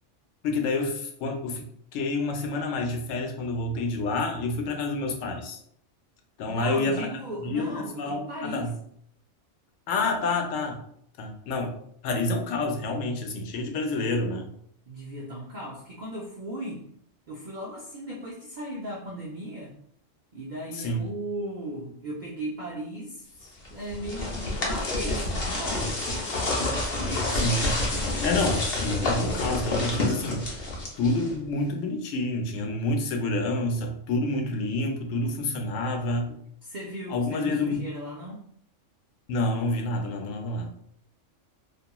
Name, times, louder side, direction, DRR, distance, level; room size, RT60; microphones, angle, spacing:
voice 1, 0.4-1.7 1.9-5.6 6.4-7.1 7.4-8.7 9.9-10.8 11.2-11.7 12.0-14.5 20.7-21.1 27.3-27.7 28.1-36.3 37.1-37.9 39.3-40.7, left 2 dB, 85° left, 3 dB, 0.9 m, -28 dB
voice 2, 6.5-8.7 14.9-16.8 17.3-19.7 20.3-26.0 27.9-28.3 36.6-38.5, equal, 70° right, -3 dB, 0.4 m, -37 dB
sound 1, 23.6-31.5, left 2 dB, 55° left, 0.8 m, -28 dB
2.8 x 2.5 x 2.2 m, 0.67 s
omnidirectional pair, 1.3 m